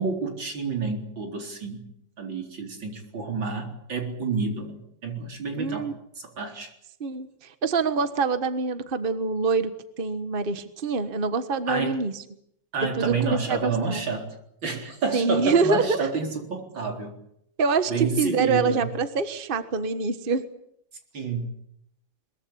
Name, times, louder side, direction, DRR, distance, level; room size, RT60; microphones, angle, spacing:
voice 1, 0.0-1.9 2.2-5.9 6.2-6.7 11.7-12.0 12.7-14.3 14.6-17.2 17.9-18.9 21.1-21.5, right 4 dB, 80° right, 3 dB, 4.8 m, -29 dB
voice 2, 5.6-5.9 7.0-9.7 10.0-12.2 13.0-14.0 15.1-16.1 17.6-20.4, right 4 dB, 30° right, 10 dB, 1.5 m, -25 dB
22.5 x 22.5 x 8.7 m, 0.74 s
omnidirectional pair, 2.1 m